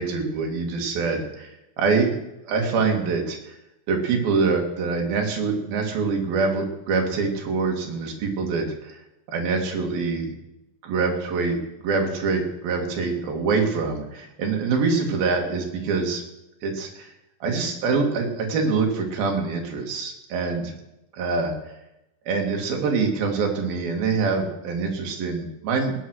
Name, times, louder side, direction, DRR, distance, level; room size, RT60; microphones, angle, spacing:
voice 1, 0.0-2.2 2.5-3.6 3.9-9.0 9.3-10.4 10.8-16.2 16.6-17.1 17.4-20.7 21.1-21.5 22.3-25.9, right 4 dB, 65° right, 2 dB, 3.9 m, -25 dB
19.0 x 8.9 x 6.4 m, 0.88 s
omnidirectional pair, 4.6 m